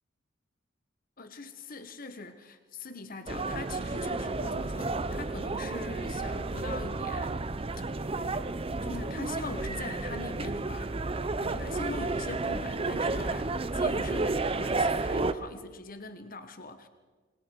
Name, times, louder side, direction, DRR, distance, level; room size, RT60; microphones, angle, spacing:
voice 1, 1.2-7.4 8.8-10.9 11.4-16.9, left 3 dB, 50° left, 9 dB, 1.5 m, -42 dB
sound 1, 3.3-15.3, right 3 dB, 30° right, 0.7 m, -31 dB
27.0 x 20.5 x 4.7 m, 1.4 s
head